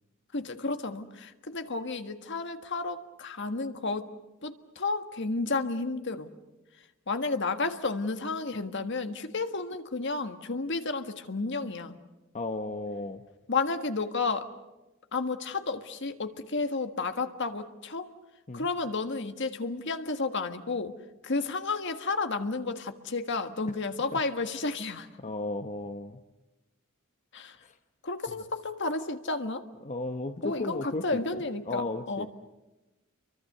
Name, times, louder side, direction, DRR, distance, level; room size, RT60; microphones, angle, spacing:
voice 1, 0.3-4.1 4.4-6.3 7.1-11.9 13.5-14.5 15.1-18.0 18.5-20.9 21.2-25.1 27.3-27.5 28.0-29.6 30.4-30.8 31.0-32.3, left 3 dB, 60° left, 8 dB, 1.6 m, -32 dB
voice 2, 12.3-13.2 18.5-18.7 24.1-24.2 25.2-26.2 27.6-27.8 28.3-28.4 29.8-32.3, left 2 dB, 35° left, 7 dB, 1.0 m, -35 dB
30.0 x 24.0 x 6.7 m, 1.1 s
head